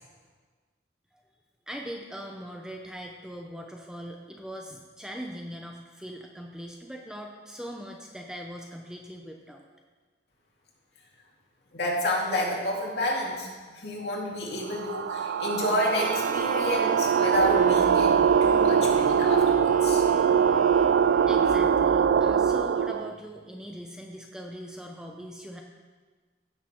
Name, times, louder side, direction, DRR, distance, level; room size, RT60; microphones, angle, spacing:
voice 1, 1.7-9.6 20.7-21.0 21.3-25.6, equal, 5° right, 1 dB, 0.7 m, -41 dB
voice 2, 11.7-20.0, left 1 dB, 60° left, -3 dB, 2.4 m, -30 dB
sound 1, 14.7-23.1, right 7 dB, 80° right, 0.3 m, -22 dB
sound 2, 15.9-21.7, right 2 dB, 45° right, 0.7 m, -40 dB
sound 3, 17.3-22.5, equal, 30° left, 1.0 m, -44 dB
15.5 x 6.6 x 4.4 m, 1.4 s
head